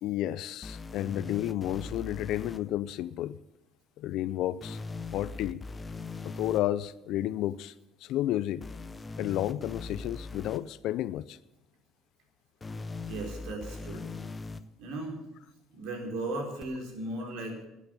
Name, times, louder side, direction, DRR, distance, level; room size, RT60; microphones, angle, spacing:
voice 1, 0.0-3.4 4.0-4.8 5.1-5.6 6.2-7.7 8.0-8.6 9.2-11.4, left 13 dB, 70° left, 16 dB, 0.4 m, -31 dB
sound 1, 0.6-2.6 4.6-6.6 8.6-10.6 12.6-14.6 16.6-16.7, left 3 dB, 25° left, 0.7 m, -40 dB
voice 2, 13.0-14.1 14.8-15.2 15.7-17.7, right 2 dB, 75° right, 1 dB, 3.9 m, -36 dB
13.0 x 8.4 x 8.2 m, 0.94 s
cardioid pair, 100°, 0 cm